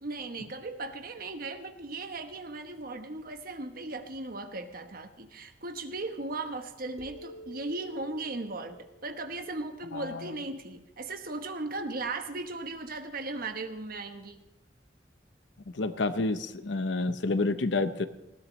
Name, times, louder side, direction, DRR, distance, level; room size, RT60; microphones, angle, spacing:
voice 1, 0.0-14.4, right 2 dB, 55° right, 7 dB, 1.1 m, -37 dB
sound 1, 7.0-10.5, right 1 dB, 20° right, 1.2 m, -51 dB
voice 2, 9.9-10.3 15.7-18.1, left 3 dB, 80° left, 11 dB, 0.8 m, -29 dB
19.5 x 15.5 x 3.2 m, 0.93 s
head